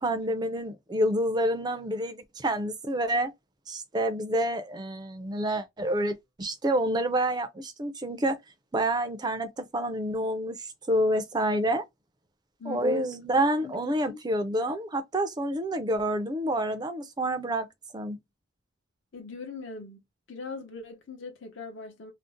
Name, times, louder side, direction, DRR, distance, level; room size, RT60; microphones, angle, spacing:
voice 1, 0.0-3.3 3.7-8.4 8.7-11.8 12.7-17.7 17.9-18.2, right 1 dB, 20° right, 0.4 m, -28 dB
voice 2, 12.6-13.0 13.6-13.8 14.1-14.2 19.1-20.0 20.3-22.1, left 4 dB, 65° left, 0.7 m, -40 dB
2.5 x 2.0 x 3.7 m
head